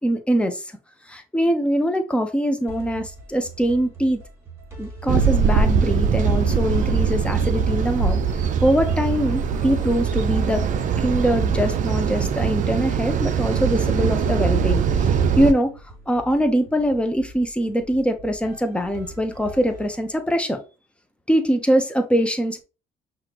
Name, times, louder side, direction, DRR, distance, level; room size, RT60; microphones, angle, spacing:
voice 1, 0.0-0.7 1.1-4.2 4.8-8.2 8.6-10.7 11.0-15.7 16.1-20.6 21.3-22.6, equal, 5° left, 0.7 m, -23 dB
sound 1, 2.7-20.5, right 1 dB, 15° right, 1.8 m, -43 dB
sound 2, 5.1-15.5, right 6 dB, 50° right, 0.5 m, -21 dB
5.6 x 2.6 x 2.9 m
cardioid pair, 110°, 17 cm